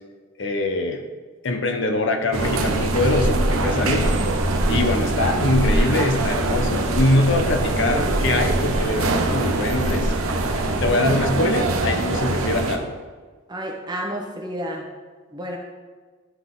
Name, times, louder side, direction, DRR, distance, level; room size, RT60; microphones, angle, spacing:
voice 1, 0.4-1.0 1.4-4.1 4.7-10.1 10.8-12.9, left 2 dB, 60° left, 4 dB, 0.7 m, -23 dB
sound 1, 2.3-12.8, right 2 dB, 80° right, 0.8 m, -22 dB
voice 2, 13.5-14.9 15.3-15.6, equal, 20° right, -1 dB, 1.0 m, -30 dB
11.5 x 3.9 x 3.8 m, 1.4 s
head